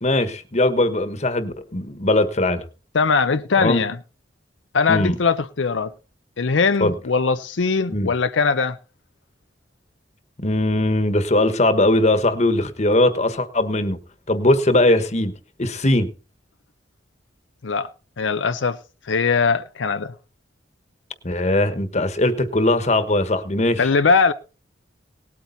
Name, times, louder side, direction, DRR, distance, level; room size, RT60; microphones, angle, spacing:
voice 1, 0.0-2.6 3.6-3.8 4.9-5.2 6.8-6.9 7.9-8.1 10.4-14.0 14.3-15.3 15.6-16.1 21.2-23.8, left 1 dB, 40° left, 1.3 m, -20 dB
voice 2, 2.9-4.0 4.7-5.9 6.4-8.8 17.6-17.9 18.2-18.8 19.1-20.1 23.8-24.3, left 5 dB, 90° left, 0.7 m, -20 dB
18.5 x 8.6 x 4.0 m
head